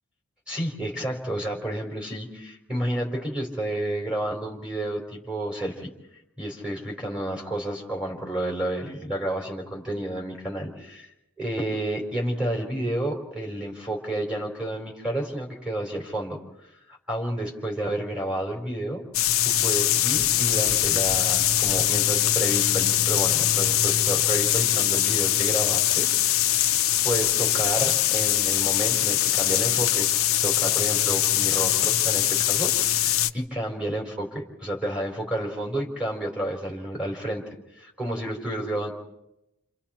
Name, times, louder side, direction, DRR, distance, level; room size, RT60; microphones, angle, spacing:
voice 1, 0.5-5.9 6.4-11.1 11.4-16.4 16.9-19.0 19.4-26.7 27.0-30.1 30.4-34.3 34.6-37.4 37.8-38.9, right 1 dB, 5° right, -2 dB, 4.3 m, -30 dB
sound 1, 19.1-33.3, left 12 dB, 60° left, 0.8 m, -22 dB
29.0 x 28.5 x 4.4 m, 0.91 s
head